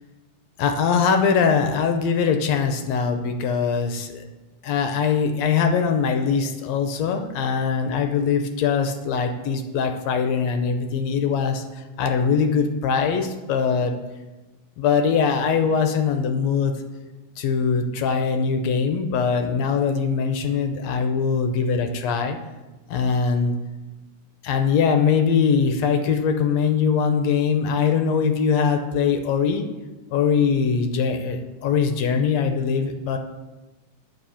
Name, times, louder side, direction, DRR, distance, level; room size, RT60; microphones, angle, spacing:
voice 1, 0.6-4.2 4.6-13.9 14.8-16.7 17.4-22.4 22.9-23.5 24.4-29.7 30.1-33.2, left 6 dB, 75° left, 6 dB, 1.6 m, -22 dB
10.5 x 4.9 x 7.0 m, 1.1 s
omnidirectional pair, 3.6 m